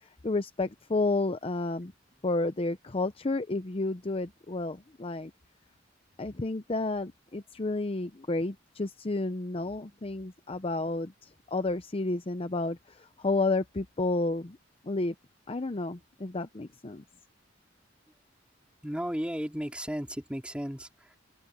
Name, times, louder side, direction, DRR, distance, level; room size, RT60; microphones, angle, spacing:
voice 1, 0.0-1.9 2.2-5.3 6.2-14.6 14.8-15.1 15.5-17.0, left 2 dB, 30° left, 0.7 m, -31 dB
voice 2, 18.8-21.2, equal, 5° right, 2.9 m, -34 dB
open air
head